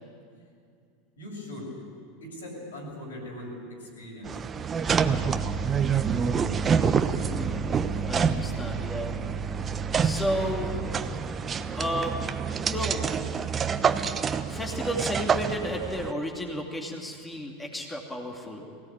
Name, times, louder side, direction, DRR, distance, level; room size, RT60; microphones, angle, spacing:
voice 1, 1.2-1.7 2.2-4.3, left 1 dB, 80° left, -2 dB, 7.2 m, -40 dB
sound 1, 4.2-16.1, right 6 dB, 25° right, 1.0 m, -27 dB
voice 2, 7.2-7.8 8.1-9.1 10.0-10.7 11.8-12.2 12.6-13.0 14.5-18.7, equal, 10° left, 0 dB, 2.6 m, -32 dB
22.5 x 17.0 x 9.0 m, 2.3 s
hypercardioid pair, 85°, 0 cm